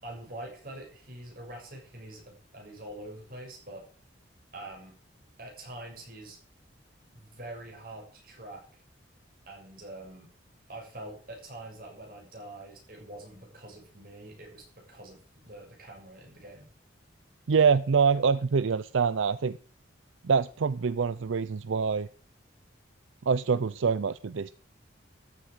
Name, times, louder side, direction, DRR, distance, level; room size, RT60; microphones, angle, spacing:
voice 1, 0.0-3.8 4.5-5.0 5.4-6.4 7.1-8.8 9.5-10.3 10.7-16.7, right 1 dB, 45° right, 0 dB, 6.7 m, -45 dB
voice 2, 17.5-19.6 20.2-22.1 23.3-24.6, right 5 dB, 80° right, 16 dB, 0.5 m, -25 dB
13.5 x 8.3 x 6.5 m, 0.41 s
head